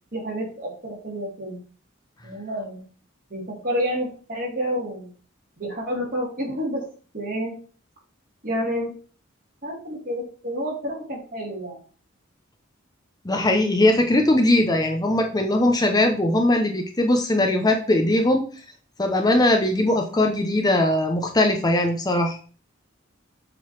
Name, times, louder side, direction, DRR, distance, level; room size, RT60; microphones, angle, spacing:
voice 1, 0.1-1.6 2.2-2.8 3.3-5.1 5.6-6.9 7.1-7.5 8.4-8.9 9.6-11.8, equal, 45° right, -4 dB, 3.2 m, -29 dB
voice 2, 13.2-18.5 19.0-22.4, left 1 dB, 20° left, 3 dB, 0.7 m, -20 dB
7.3 x 3.9 x 4.6 m, 0.40 s
head